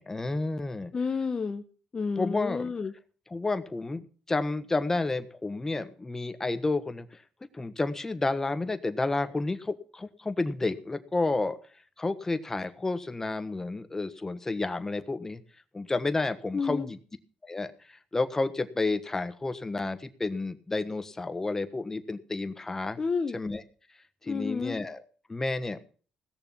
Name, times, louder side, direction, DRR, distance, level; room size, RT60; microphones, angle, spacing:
voice 1, 0.0-0.9 2.2-2.7 3.3-7.1 7.5-11.6 12.0-15.4 15.7-17.0 17.4-23.0 23.3-23.6 24.2-25.0 25.3-25.8, left 3 dB, 20° left, 10 dB, 1.3 m, -31 dB
voice 2, 0.9-1.6 1.9-2.9 16.5-16.9 23.0-23.4 24.3-24.8, left 5 dB, 35° left, 7 dB, 0.9 m, -30 dB
17.0 x 6.8 x 7.3 m, 0.41 s
cardioid pair, 95°, 2 cm